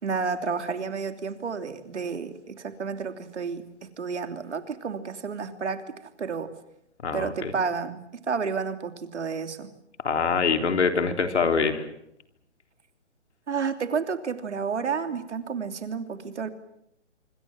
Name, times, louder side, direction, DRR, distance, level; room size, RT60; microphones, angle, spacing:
voice 1, 0.0-6.6 7.1-9.7 13.5-16.5, right 5 dB, 75° right, 8 dB, 3.2 m, -31 dB
voice 2, 7.0-7.5 10.0-11.9, left 5 dB, 70° left, 6 dB, 3.8 m, -24 dB
26.0 x 25.5 x 7.5 m, 0.75 s
hypercardioid pair, 145°, 36 cm